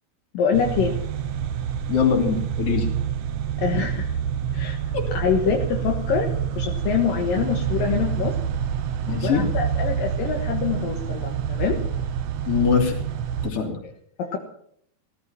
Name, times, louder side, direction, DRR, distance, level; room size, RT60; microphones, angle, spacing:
voice 1, 0.3-1.0 3.6-4.2 4.5-8.4 9.2-11.8 14.2-14.4, left 6 dB, 70° left, 1 dB, 3.0 m, -25 dB
sound 1, 0.5-13.5, right 8 dB, 70° right, 1.7 m, -27 dB
voice 2, 1.9-2.9 4.9-5.1 9.1-9.4 12.5-12.9 13.4-13.8, left 6 dB, 40° left, 1 dB, 3.8 m, -22 dB
17.5 x 14.0 x 5.8 m, 0.66 s
omnidirectional pair, 4.3 m